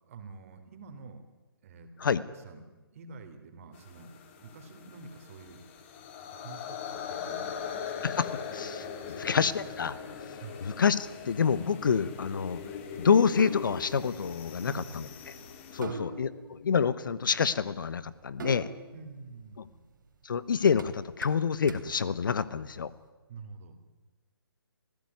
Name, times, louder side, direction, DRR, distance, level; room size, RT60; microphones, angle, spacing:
voice 1, 0.0-1.2 1.6-4.1 4.4-5.6 6.2-8.2 9.0-9.3 10.4-10.6 14.6-15.1 15.8-16.1 18.9-19.8 23.3-23.7, right 4 dB, 35° right, 7 dB, 3.2 m, -48 dB
sound 1, 3.7-15.8, left 7 dB, 30° left, 2.4 m, -41 dB
voice 2, 8.0-8.9 9.2-10.0 10.6-12.6 13.0-15.1 15.7-18.7 20.2-22.9, left 6 dB, 55° left, 17 dB, 1.1 m, -27 dB
sound 2, 10.9-23.0, right 4 dB, 55° right, 3.1 m, -47 dB
26.0 x 15.5 x 9.6 m, 1.2 s
figure-of-eight pair, 150°, 13 cm